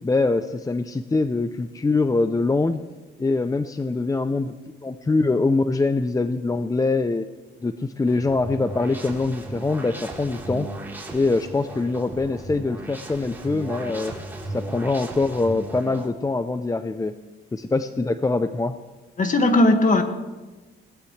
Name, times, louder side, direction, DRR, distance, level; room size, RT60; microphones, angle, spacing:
voice 1, 0.0-2.8 3.2-4.5 4.8-7.3 7.6-10.7 11.1-14.1 14.5-17.2 17.5-18.8, left 3 dB, 15° left, 10 dB, 0.6 m, -23 dB
sound 1, 8.1-16.1, right 2 dB, 10° right, 3.8 m, -36 dB
voice 2, 19.2-20.0, left 2 dB, 40° left, 6 dB, 2.0 m, -17 dB
21.5 x 18.0 x 3.3 m, 1.2 s
cardioid pair, 90°, 20 cm